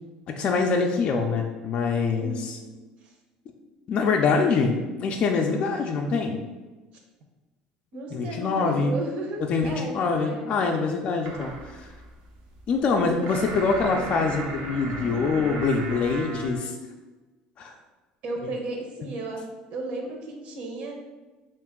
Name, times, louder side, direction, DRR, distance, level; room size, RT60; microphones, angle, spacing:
voice 1, 0.3-2.6 3.9-6.4 8.1-8.9 9.5-11.9 12.7-16.8 17.6-17.7, left 4 dB, 40° left, 2 dB, 0.4 m, -24 dB
voice 2, 2.2-2.7 3.0-3.1 7.9-10.6 13.3-13.5 18.2-19.4 19.7-20.9, right 2 dB, 55° right, 1 dB, 0.9 m, -34 dB
sound 1, 11.2-16.6, right 3 dB, 75° right, 0.8 m, -37 dB
3.8 x 2.5 x 3.6 m, 1.2 s
cardioid pair, 130°, 3 cm